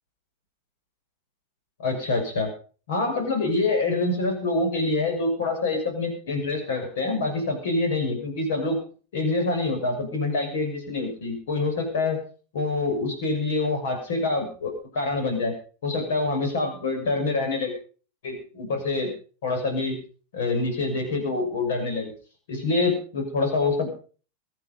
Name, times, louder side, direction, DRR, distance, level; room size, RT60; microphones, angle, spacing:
voice 1, 1.8-2.5 2.9-8.8 9.1-12.2 12.5-15.5 15.8-17.7 18.2-19.1 19.4-20.0 20.3-22.1 22.5-23.9, left 3 dB, 55° left, 4 dB, 6.2 m, -26 dB
23.0 x 8.7 x 5.3 m, 0.41 s
figure-of-eight pair, 90°, 0 cm